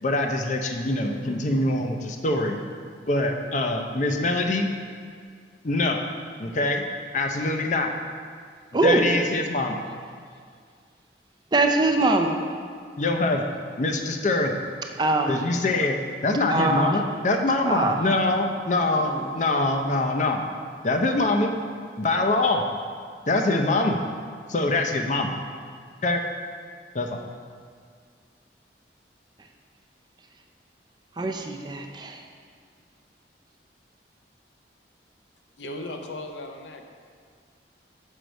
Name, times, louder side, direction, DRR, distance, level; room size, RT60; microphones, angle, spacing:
voice 1, 0.0-2.6 3.0-4.7 5.6-6.0 6.4-6.8 7.1-7.9 8.8-9.8 13.0-13.4 13.8-14.6 15.3-16.0 16.2-20.4 20.8-21.5 22.0-22.6 23.3-24.0 24.5-25.3 26.0-26.2 26.9-27.2, left 2 dB, 45° left, 4 dB, 0.5 m, -24 dB
voice 2, 8.7-9.1 11.5-12.4 15.0-15.4 16.5-17.0 17.6-18.0 19.0-19.3 31.2-32.2, right 2 dB, 25° right, 3 dB, 0.4 m, -23 dB
voice 3, 35.6-36.8, left 1 dB, 90° left, 4 dB, 0.6 m, -36 dB
6.4 x 4.5 x 5.2 m, 2.1 s
head